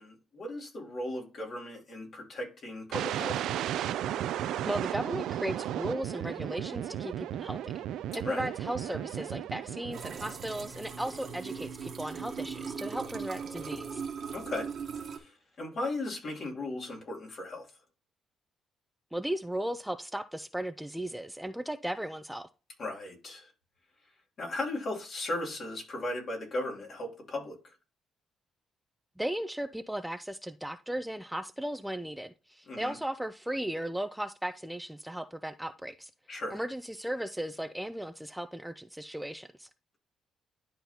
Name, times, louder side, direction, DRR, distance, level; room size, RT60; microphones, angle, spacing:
voice 1, 0.0-3.5 8.2-8.5 14.3-14.7 15.1-17.7 22.8-23.5 24.4-27.6 32.7-32.9 36.3-36.6, left 2 dB, 50° left, 2.6 m, -37 dB
sound 1, 2.9-10.8, right 11 dB, 80° right, 0.4 m, -35 dB
voice 2, 4.6-7.7 8.2-14.0 19.1-22.5 29.2-36.1 36.5-39.7, right 1 dB, 5° right, 0.4 m, -36 dB
sound 2, 9.9-15.2, right 6 dB, 55° right, 1.2 m, -39 dB
11.5 x 3.9 x 2.8 m
cardioid pair, 90°, 0 cm